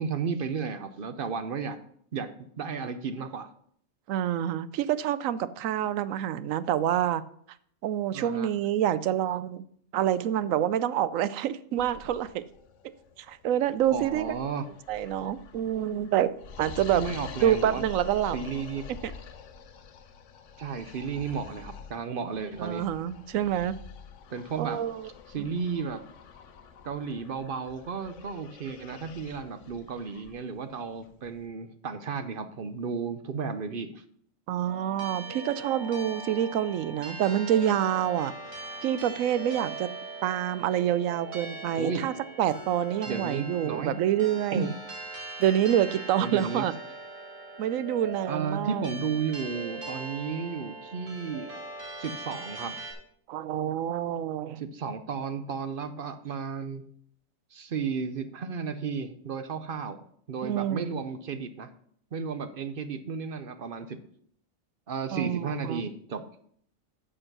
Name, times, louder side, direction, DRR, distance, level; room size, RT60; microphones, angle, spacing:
voice 1, 0.0-1.8 2.1-2.3 2.6-3.5 8.1-8.5 13.9-14.6 16.9-17.8 18.3-18.8 20.6-22.8 24.3-24.8 25.3-26.0 26.8-34.0 41.8-42.0 43.1-43.9 44.5-44.7 46.2-46.7 48.3-51.5 52.0-52.8 54.6-56.8 57.5-60.0 60.3-61.7 62.1-64.0 64.9-66.2, right 5 dB, 50° right, 10 dB, 0.7 m, -33 dB
voice 2, 4.1-7.2 7.8-9.6 9.9-12.4 13.2-14.2 14.9-16.3 16.6-17.0 17.4-18.4 19.0-19.1 22.6-23.7 24.6-25.1 34.5-38.3 38.8-39.9 40.2-44.7 45.4-46.7 47.6-48.8 53.3-54.6 60.4-61.0 65.1-65.9, right 10 dB, 85° right, 15 dB, 1.0 m, -27 dB
sound 1, 11.8-31.4, left 5 dB, 70° left, 1.1 m, -47 dB
sound 2, 34.6-52.9, right 3 dB, 70° right, 2.6 m, -40 dB
7.8 x 6.3 x 6.0 m, 0.65 s
omnidirectional pair, 1.4 m